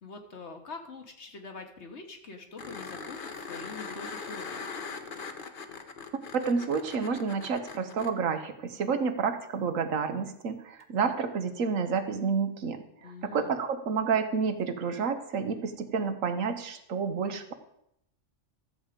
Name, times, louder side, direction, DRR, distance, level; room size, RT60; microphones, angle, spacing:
voice 1, 0.0-4.7 13.0-13.5, left 4 dB, 60° left, 5 dB, 1.6 m, -44 dB
sound 1, 2.6-8.1 10.8-10.9, left 5 dB, 45° left, 1.0 m, -41 dB
voice 2, 6.3-17.5, right 5 dB, 85° right, 8 dB, 1.4 m, -30 dB
13.5 x 7.3 x 5.0 m, 0.79 s
omnidirectional pair, 1.3 m